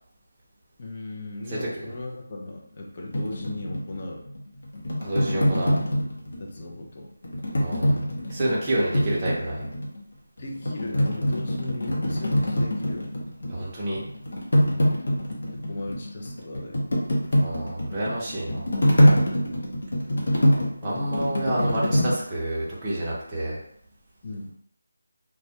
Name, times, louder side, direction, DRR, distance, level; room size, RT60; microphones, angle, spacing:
voice 1, 0.8-4.2 6.4-7.1 10.4-13.1 14.7-14.9 15.5-16.9 19.4-19.6 24.2-24.5, left 2 dB, 35° left, -1 dB, 0.5 m, -37 dB
sound 1, 3.1-6.6 7.2-10.0 10.4-13.6 13.9-22.1, equal, 65° left, 0.8 m, -24 dB
voice 2, 5.0-5.8 7.6-9.7 13.5-14.0 17.4-18.7 20.8-23.6, right 1 dB, 20° right, -6 dB, 0.6 m, -29 dB
2.2 x 2.1 x 2.7 m, 0.69 s
figure-of-eight pair, 170°, 0 cm